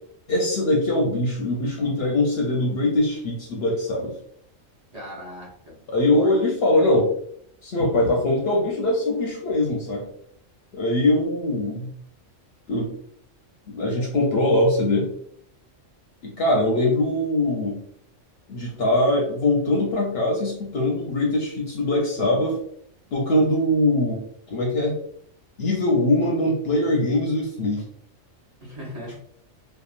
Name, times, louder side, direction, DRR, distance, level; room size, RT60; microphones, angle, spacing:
voice 1, 0.3-4.2 5.9-7.1 7.6-10.1 10.7-11.9 12.7-12.9 13.7-15.1 16.2-17.8 18.5-22.6 23.1-24.2 24.5-25.0 25.6-27.8, left 1 dB, 60° left, -1 dB, 0.7 m, -22 dB
voice 2, 4.9-5.8 6.1-6.3 6.7-6.9 28.6-29.2, equal, 35° right, -6 dB, 0.9 m, -37 dB
2.9 x 2.3 x 2.4 m, 0.66 s
omnidirectional pair, 1.3 m